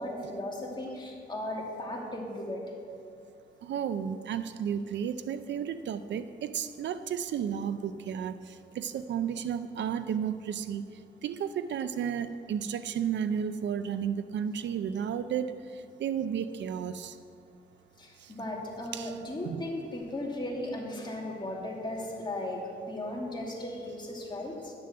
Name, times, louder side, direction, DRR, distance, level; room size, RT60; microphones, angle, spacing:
voice 1, 0.0-2.6 18.0-24.7, left 1 dB, 25° left, -2 dB, 2.5 m, -36 dB
voice 2, 3.6-10.8 11.2-15.5 16.0-17.2 18.9-19.2 19.4-19.6, right 8 dB, 80° right, 12 dB, 0.5 m, -32 dB
10.5 x 7.0 x 7.7 m, 2.3 s
cardioid pair, 90°, 18 cm